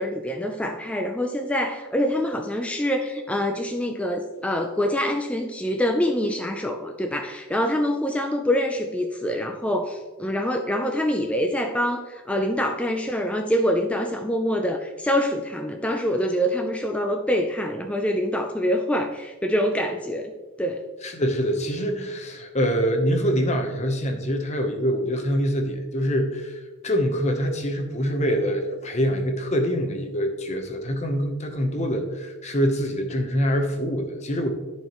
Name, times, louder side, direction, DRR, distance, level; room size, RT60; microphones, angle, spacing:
voice 1, 0.0-20.3 20.6-20.8, equal, 5° left, 4 dB, 0.3 m, -25 dB
voice 2, 21.0-34.5, equal, 30° left, 4 dB, 0.9 m, -25 dB
13.5 x 4.5 x 3.0 m, 1.2 s
head